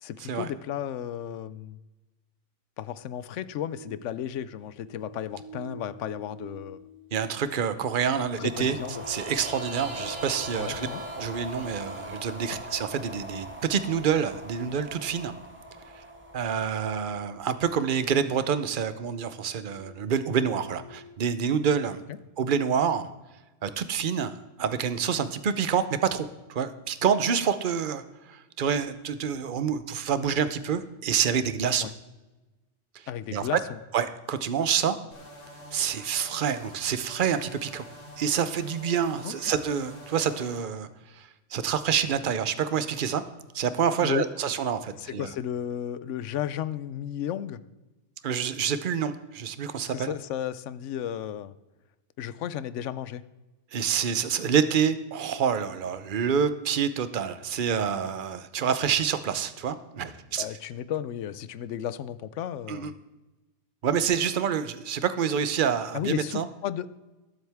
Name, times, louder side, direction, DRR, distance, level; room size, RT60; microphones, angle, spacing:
voice 1, 0.0-1.8 2.8-6.8 8.4-9.0 10.6-11.0 12.5-12.6 31.8-31.9 33.1-33.8 39.2-39.3 44.0-44.3 45.0-47.6 49.8-51.5 52.2-53.2 60.4-62.9 65.9-66.9, left 10 dB, 85° left, 16 dB, 1.0 m, -34 dB
sound 1, 3.6-4.1 4.7-7.1 8.9-13.5 14.5-18.0 19.7-21.1, equal, 35° right, 3.0 m, -46 dB
voice 2, 7.1-8.8 9.1-10.9 11.2-15.3 15.9-16.0 16.3-22.0 22.4-23.1 23.6-31.9 32.9-33.0 33.3-33.6 33.9-35.0 35.7-37.8 38.2-40.9 41.1-43.2 43.5-45.3 48.2-50.1 53.7-60.5 62.7-62.9 63.8-66.5, right 7 dB, 50° right, 12 dB, 0.9 m, -27 dB
sound 2, 7.9-17.4, right 1 dB, 10° right, 1.4 m, -41 dB
sound 3, 35.1-40.6, equal, 70° left, 2.8 m, -47 dB
20.5 x 7.7 x 3.5 m, 1.1 s
omnidirectional pair, 1.2 m